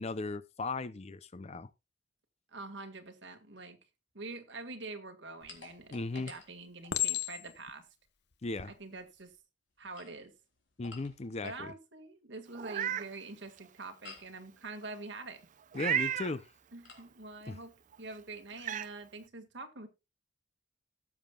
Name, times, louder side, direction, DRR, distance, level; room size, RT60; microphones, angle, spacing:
voice 1, 0.0-1.7 5.9-6.3 8.4-8.7 10.8-11.7 15.7-16.5 17.5-17.6, left 3 dB, 35° left, 0.5 m, -37 dB
voice 2, 2.5-3.8 4.1-7.9 8.8-9.3 9.8-10.3 11.4-15.4 16.7-17.7 18.0-19.9, right 3 dB, 65° right, 1.8 m, -45 dB
Chink clink, 5.4-5.9 6.9-7.7 8.4-8.7, left 14 dB, 60° left, 0.9 m, -34 dB
sound 1, 5.5-7.3 9.7-11.7 14.0-14.4 16.8-17.1, left 5 dB, 80° left, 3.4 m, -54 dB
Meow, 12.5-13.1 13.6-13.7 15.7-16.3 17.9-18.0 18.6-18.9, right 9 dB, 40° right, 0.4 m, -32 dB
18.0 x 7.3 x 2.3 m
head